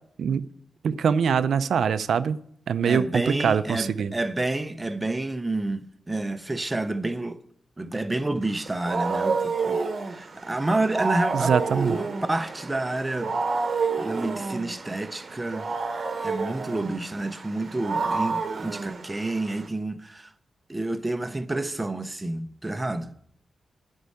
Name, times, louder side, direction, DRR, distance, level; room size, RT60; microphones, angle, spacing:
voice 1, 0.8-2.4 2.7-4.1 11.3-11.9, right 7 dB, 70° right, 0.5 m, -23 dB
voice 2, 2.8-7.4 7.8-13.3 13.7-15.7 16.2-20.3 20.7-23.1, right 2 dB, 15° right, 0.6 m, -29 dB
Wild animals, 8.5-19.7, right 4 dB, 40° right, 1.0 m, -30 dB
11.5 x 5.4 x 8.4 m
wide cardioid pair, 175°, 0 cm